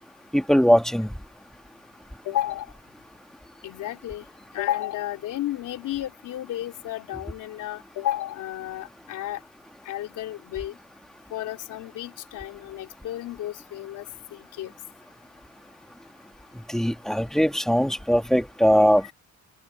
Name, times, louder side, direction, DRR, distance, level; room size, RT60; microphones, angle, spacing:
voice 1, 0.3-1.1 16.7-19.1, equal, ahead, 1.7 m, -20 dB
voice 2, 2.2-2.7 3.6-4.3 4.5-9.4 9.9-10.7 11.3-14.0 14.6-14.7, left 13 dB, 85° left, 3.9 m, -32 dB
open air
cardioid pair, 90°, 30 cm